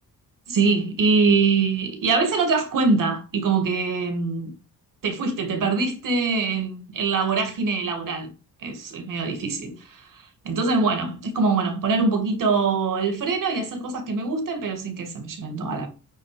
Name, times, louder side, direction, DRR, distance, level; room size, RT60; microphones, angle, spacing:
voice 1, 0.5-4.6 5.0-8.3 8.6-15.9, right 4 dB, 60° right, 2.4 m, -23 dB
9.8 x 4.5 x 5.2 m
wide cardioid pair, 180°, 36 cm